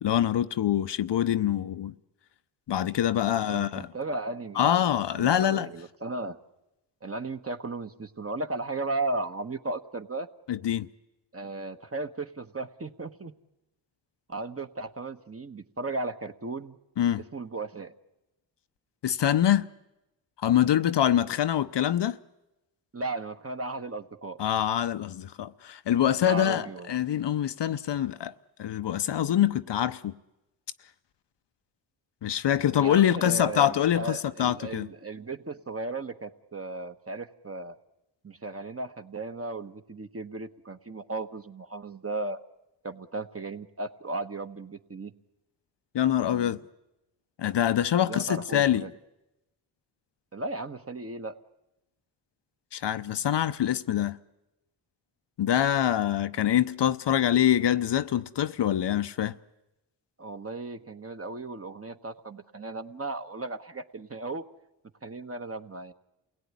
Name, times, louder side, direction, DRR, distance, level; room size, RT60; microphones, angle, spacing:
voice 1, 0.0-1.9 2.7-3.9 4.6-5.7 10.5-10.9 17.0-17.2 19.0-19.7 20.4-22.2 24.4-28.3 28.6-30.1 32.2-34.9 45.9-46.6 47.4-48.8 52.7-54.2 55.4-59.3, left 10 dB, 60° left, 0.8 m, -25 dB
voice 2, 3.2-6.4 7.0-10.3 11.3-13.4 14.3-16.8 17.3-17.9 22.9-24.4 26.2-26.9 32.7-37.8 38.2-42.4 42.8-45.1 46.3-46.6 48.0-48.9 50.3-51.3 60.2-64.4 65.0-65.9, right 3 dB, 30° right, 1.4 m, -36 dB
27.5 x 17.5 x 9.7 m
cardioid pair, 50°, 48 cm